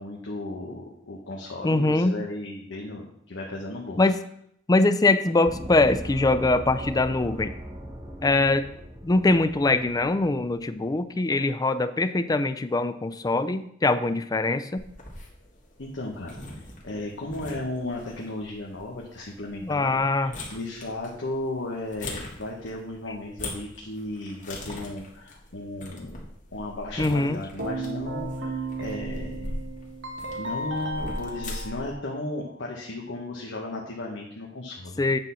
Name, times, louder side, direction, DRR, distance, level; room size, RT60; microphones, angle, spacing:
voice 1, 0.0-4.1 15.8-26.2 26.5-29.6 30.3-35.0, left 2 dB, 85° left, -2 dB, 1.2 m, -35 dB
voice 2, 1.6-2.2 4.0-4.2 4.7-7.5 8.2-8.7 9.0-14.8 19.6-20.3 27.0-27.4 35.0-35.2, left 2 dB, 20° left, 12 dB, 0.4 m, -23 dB
Gong, 5.5-10.7, right 1 dB, 15° right, 1.0 m, -39 dB
sound 1, 14.8-31.9, left 1 dB, 45° left, 1.8 m, -41 dB
Keyboard (musical), 27.6-32.6, right 2 dB, 70° right, 1.2 m, -34 dB
8.9 x 4.0 x 5.7 m, 0.70 s
head